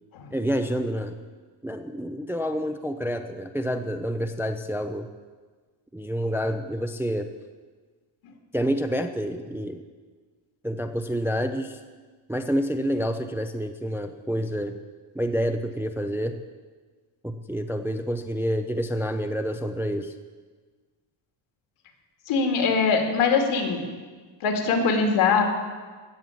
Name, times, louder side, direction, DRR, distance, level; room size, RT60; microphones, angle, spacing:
voice 1, 0.3-1.2 1.6-5.1 5.9-7.3 8.5-9.8 10.6-11.8 12.3-14.8 15.2-16.4 17.2-20.1, equal, 5° right, 7 dB, 0.3 m, -28 dB
voice 2, 22.3-23.8 24.4-25.4, left 5 dB, 85° left, 3 dB, 2.7 m, -22 dB
15.5 x 7.1 x 9.2 m, 1.4 s
cardioid pair, 175°, 48 cm